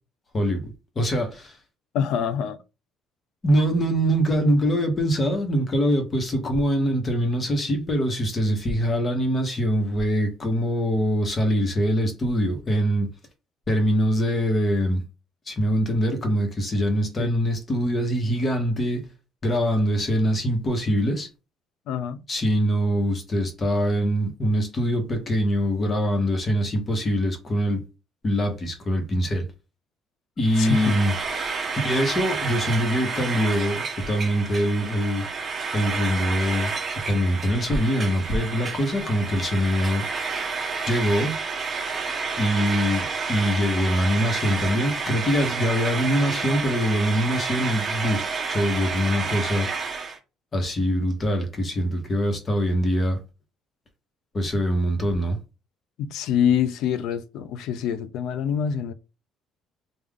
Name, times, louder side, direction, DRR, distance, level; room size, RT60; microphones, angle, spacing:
voice 1, 0.3-1.6 3.4-13.1 13.7-15.0 15.5-19.1 19.4-21.3 22.3-27.8 28.2-29.5 30.4-31.1 31.8-35.3 35.7-36.7 37.1-40.0 40.9-41.4 42.4-49.7 50.5-53.2 54.3-55.4, equal, 30° left, 1.1 m, -23 dB
voice 2, 1.9-2.6 17.2-17.4 21.9-22.2 30.6-30.9 56.0-58.9, left 8 dB, 75° left, 0.4 m, -25 dB
Frying (food), 30.4-50.2, right 4 dB, 30° right, 1.0 m, -30 dB
3.5 x 2.4 x 3.6 m
cardioid pair, 120°, 0 cm